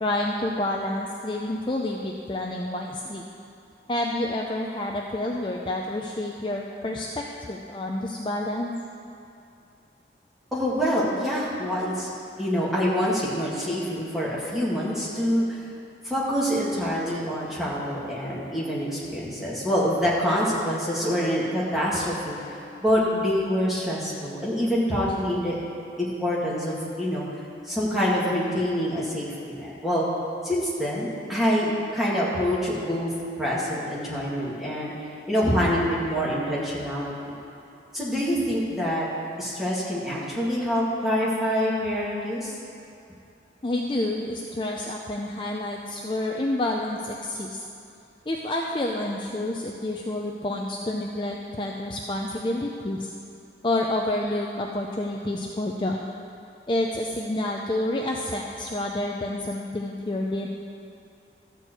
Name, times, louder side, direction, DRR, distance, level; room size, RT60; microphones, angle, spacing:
voice 1, 0.0-3.2 3.9-8.7 43.6-47.6 48.3-53.1 53.6-56.0 56.7-60.5, left 1 dB, 30° left, 0 dB, 0.5 m, -29 dB
voice 2, 10.5-12.1 12.4-15.6 16.0-22.4 22.8-25.6 26.0-27.2 27.6-30.1 30.4-33.1 33.4-34.9 35.3-37.4 37.9-39.1 39.4-42.6, equal, ahead, -8 dB, 2.1 m, -26 dB
13.0 x 4.5 x 7.9 m, 2.6 s
head